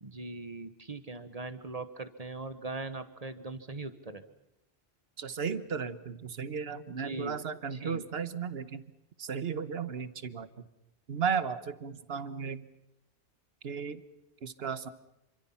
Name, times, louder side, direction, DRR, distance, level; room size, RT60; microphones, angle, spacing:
voice 1, 0.0-4.2 6.9-7.3 7.7-8.0, right 3 dB, 40° right, 11 dB, 1.3 m, -40 dB
voice 2, 5.2-8.8 9.2-10.5 11.1-12.7 13.6-14.0 14.4-14.9, right 6 dB, 75° right, 14 dB, 1.3 m, -35 dB
27.5 x 25.5 x 5.8 m, 0.89 s
omnidirectional pair, 1.0 m